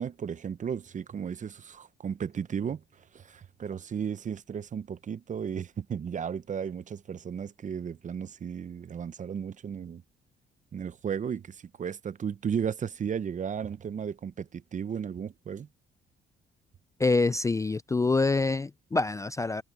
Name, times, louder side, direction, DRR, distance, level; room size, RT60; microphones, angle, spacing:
voice 1, 0.0-2.8 3.1-10.0 10.7-15.7, right 7 dB, 40° right, 0.6 m, -34 dB
voice 2, 17.0-19.6, left 3 dB, 15° left, 0.4 m, -26 dB
cardioid pair, 90°, 20 cm